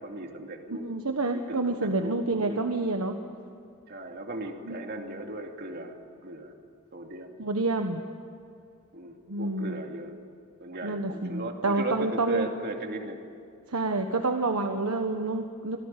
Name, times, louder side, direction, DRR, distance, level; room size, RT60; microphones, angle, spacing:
voice 1, 0.0-0.8 1.3-2.6 3.9-5.9 6.2-6.5 6.9-7.3 8.9-10.1 10.6-13.2, right 2 dB, 45° right, 3 dB, 2.6 m, -37 dB
voice 2, 0.8-3.1 4.7-5.1 7.4-8.0 9.3-9.8 10.8-12.5 13.7-15.8, right 2 dB, 80° right, 4 dB, 1.4 m, -28 dB
27.0 x 17.0 x 9.2 m, 2.5 s
head